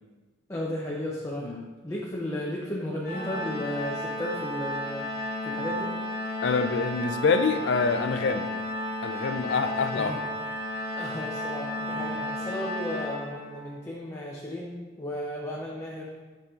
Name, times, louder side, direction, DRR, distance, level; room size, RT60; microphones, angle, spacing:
voice 1, 0.5-1.6 1.8-5.1 5.4-5.9 9.9-10.2 10.9-16.1, left 1 dB, 15° left, -4 dB, 0.6 m, -34 dB
Organ, 3.0-13.8, left 1 dB, 50° left, 1.6 m, -33 dB
voice 2, 6.4-8.5 9.0-10.2 12.0-12.1, left 4 dB, 65° left, 9 dB, 0.4 m, -26 dB
8.1 x 5.0 x 2.4 m, 1.3 s
head